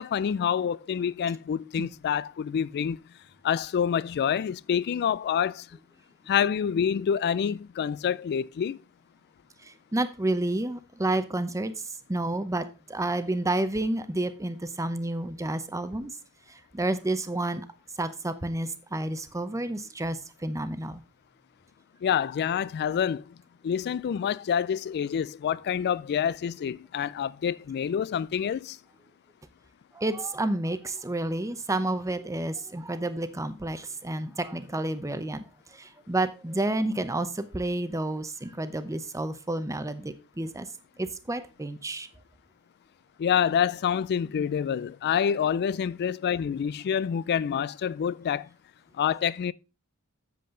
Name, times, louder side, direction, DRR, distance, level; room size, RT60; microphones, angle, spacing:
voice 1, 0.0-3.0 3.4-5.7 6.3-8.8 22.0-23.3 23.6-28.8 43.2-48.5 49.0-49.5, left 8 dB, 50° left, 0.3 m, -27 dB
voice 2, 9.9-11.7 12.1-16.1 16.7-17.6 18.0-21.0 29.9-35.4 35.7-40.7 41.0-42.1, right 2 dB, 15° right, 0.7 m, -30 dB
7.8 x 7.4 x 3.7 m
head